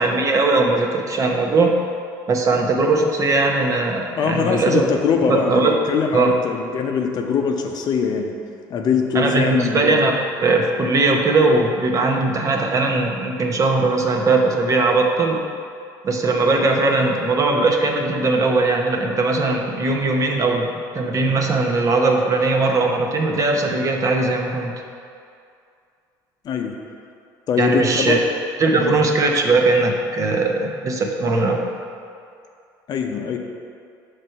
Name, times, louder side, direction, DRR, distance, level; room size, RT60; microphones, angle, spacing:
voice 1, 0.0-1.7 2.3-4.9 5.3-5.8 6.1-6.3 9.1-15.4 16.0-24.7 27.6-28.2 28.6-31.6, right 3 dB, 35° right, 2 dB, 0.8 m, -19 dB
voice 2, 4.2-8.3 8.7-10.0 26.4-26.7 27.5-28.2 28.7-29.0 32.9-33.4, left 6 dB, 50° left, 3 dB, 0.6 m, -22 dB
5.9 x 3.3 x 5.5 m, 2.4 s
supercardioid pair, 90°, 9 cm